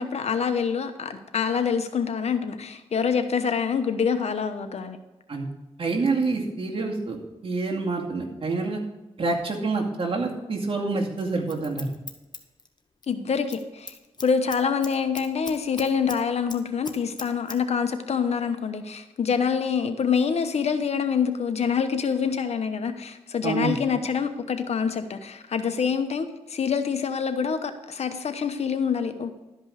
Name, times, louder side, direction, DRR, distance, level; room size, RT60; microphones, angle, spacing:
voice 1, 0.0-5.0 13.1-14.0 14.2-29.4, left 6 dB, 70° left, 8 dB, 1.0 m, -26 dB
voice 2, 5.8-7.2 7.4-8.8 9.2-11.9 23.4-23.7, right 3 dB, 55° right, -1 dB, 2.3 m, -27 dB
Scissors, 11.2-13.1 13.4-13.6 13.9-16.2 16.5-17.6 17.9-18.0, left 4 dB, 40° left, 1.1 m, -39 dB
12.0 x 5.3 x 6.5 m, 1.0 s
cardioid pair, 70°, 11 cm